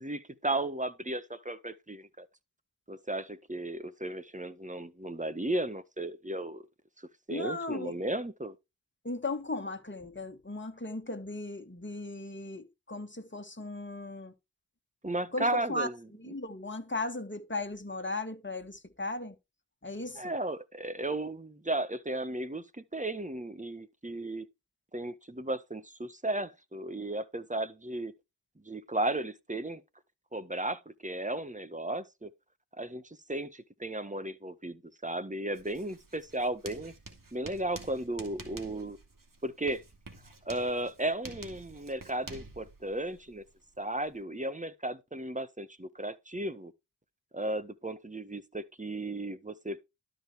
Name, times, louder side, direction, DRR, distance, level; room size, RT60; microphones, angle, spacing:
voice 1, 0.0-2.3 2.9-6.6 7.0-8.5 15.0-16.0 20.1-22.6 22.9-24.5 24.9-28.1 28.6-29.8 30.3-32.3 32.8-36.9 37.3-39.0 39.4-39.8 40.4-43.4 43.8-46.7 47.3-49.8, right 1 dB, 20° right, 1.4 m, -35 dB
voice 2, 7.3-7.9 9.0-14.3 15.3-15.9 16.2-19.3 19.8-20.3, left 2 dB, 30° left, 2.1 m, -37 dB
Writing, 35.5-44.2, right 3 dB, 50° right, 2.5 m, -49 dB
12.5 x 5.2 x 4.8 m
cardioid pair, 45°, 41 cm